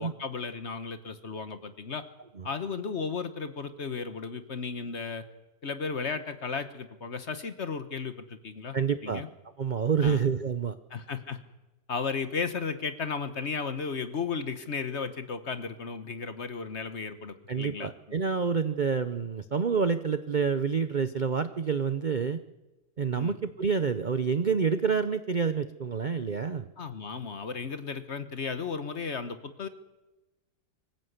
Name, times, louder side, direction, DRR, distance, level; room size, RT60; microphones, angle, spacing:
voice 1, 0.0-2.0 2.4-5.2 5.6-8.8 9.0-9.3 10.0-10.2 10.9-11.4 11.9-18.2 23.1-23.3 26.8-29.7, left 5 dB, 45° left, 10 dB, 1.3 m, -34 dB
voice 2, 8.7-9.2 9.6-10.8 17.5-22.4 23.0-26.7, right 6 dB, 45° right, 11 dB, 0.6 m, -28 dB
24.5 x 15.0 x 8.1 m, 1.1 s
omnidirectional pair, 1.8 m